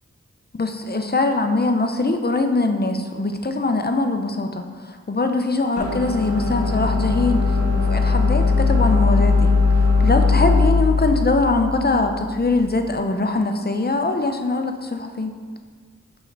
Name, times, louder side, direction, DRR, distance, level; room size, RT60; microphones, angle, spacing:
voice 1, 0.6-9.5 10.0-15.3, left 2 dB, 35° left, 5 dB, 0.6 m, -22 dB
sound 1, 5.8-12.8, left 4 dB, 55° left, 1.3 m, -19 dB
6.2 x 5.1 x 3.3 m, 1.6 s
wide cardioid pair, 40°, 30 cm